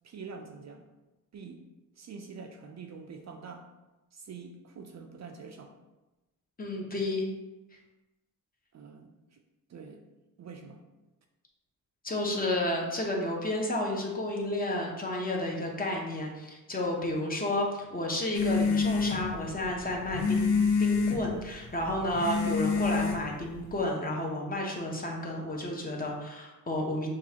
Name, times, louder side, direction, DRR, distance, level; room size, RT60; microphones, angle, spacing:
voice 1, 0.0-0.8 1.3-1.6 2.0-3.7 4.1-5.7 8.7-9.1 9.7-10.0 10.4-10.8, right 5 dB, 50° right, 4 dB, 0.4 m, -45 dB
voice 2, 6.6-7.3 12.0-20.5 20.8-27.1, left 1 dB, 25° left, -1 dB, 0.8 m, -31 dB
sound 1, 18.3-23.8, left 5 dB, 85° left, 0.8 m, -28 dB
6.1 x 2.4 x 2.8 m, 1.1 s
cardioid pair, 110°, 37 cm